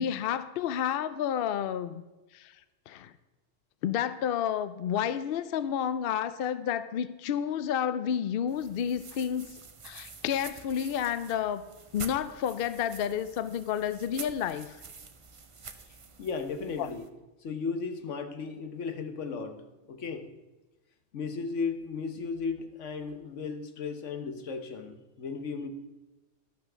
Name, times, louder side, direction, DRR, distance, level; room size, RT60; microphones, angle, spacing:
voice 1, 0.0-2.0 2.3-2.5 2.9-3.1 3.8-9.5 9.8-11.6 11.9-14.8 16.8-16.9, left 9 dB, 60° left, 13 dB, 0.7 m, -30 dB
sound 1, 8.5-17.1, right 5 dB, 35° right, 0.5 m, -47 dB
voice 2, 16.2-17.0 17.4-20.3 21.1-25.7, left 5 dB, 80° left, 7 dB, 1.3 m, -35 dB
11.5 x 5.8 x 6.1 m, 1.1 s
omnidirectional pair, 1.2 m